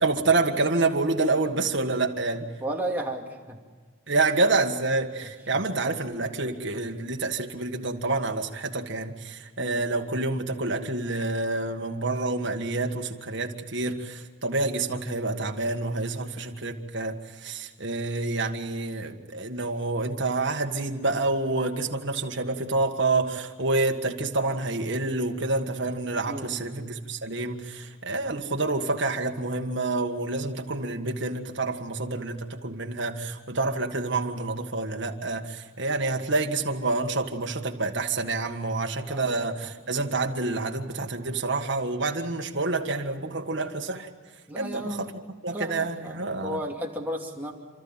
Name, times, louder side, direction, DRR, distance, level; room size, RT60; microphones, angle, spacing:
voice 1, 0.0-2.5 4.1-44.1 44.6-45.1 45.4-46.6, right 3 dB, 55° right, 3 dB, 1.8 m, -28 dB
voice 2, 2.6-3.6 9.6-9.8 26.2-26.6 39.1-39.3 44.5-45.1 45.5-47.5, right 1 dB, 10° right, -1 dB, 2.5 m, -33 dB
29.0 x 13.5 x 8.9 m, 1.6 s
head